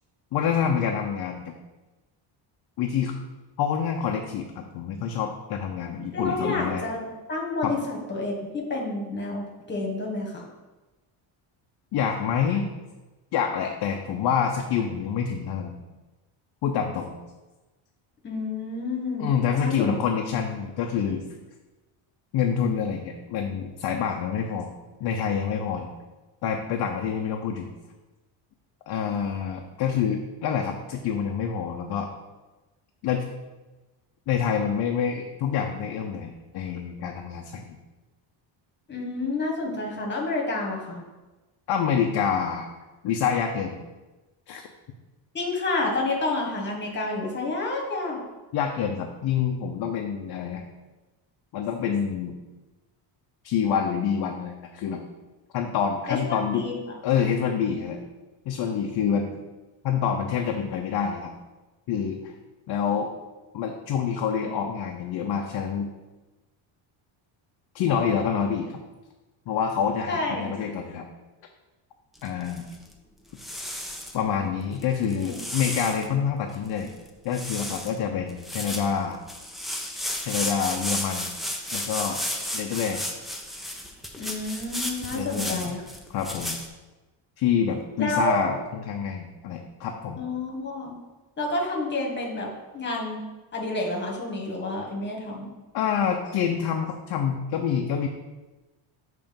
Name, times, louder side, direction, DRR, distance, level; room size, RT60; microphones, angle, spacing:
voice 1, 0.3-1.5 2.8-3.1 3.6-6.9 7.6-7.7 11.9-12.7 13.3-15.8 16.6-17.1 19.2-21.2 22.3-24.7 25.0-25.9 26.4-27.7 28.9-32.1 33.0-33.2 34.3-37.7 41.7-42.7 43.0-43.8 44.5-44.6 48.5-50.6 51.5-52.3 53.4-55.0 55.5-56.7 57.0-58.0 58.5-59.4 59.8-61.3 61.9-62.3 62.7-63.1 63.5-65.9 67.7-68.8 69.5-71.1 72.2-72.7 74.1-76.9 77.2-79.2 80.2-81.3 81.7-82.2 82.5-83.0 85.1-85.7 86.1-86.6 87.4-90.2 95.7-98.1, left 7 dB, 50° left, 2 dB, 0.6 m, -27 dB
voice 2, 6.1-10.4 18.2-19.9 38.9-41.0 45.3-48.2 56.1-56.8 70.1-70.5 75.2-75.4 84.1-85.9 88.0-88.5 90.2-91.0 91.4-93.2 93.5-95.5, left 2 dB, 20° left, -1 dB, 1.4 m, -29 dB
sound 1, 72.2-72.9 73.4-74.2 74.8-76.1 76.5-76.6 76.8-77.1 77.3-78.0 78.3-86.7, left 1 dB, ahead, 0.4 m, -33 dB
7.1 x 3.3 x 5.1 m, 1.1 s
cardioid pair, 135°, 49 cm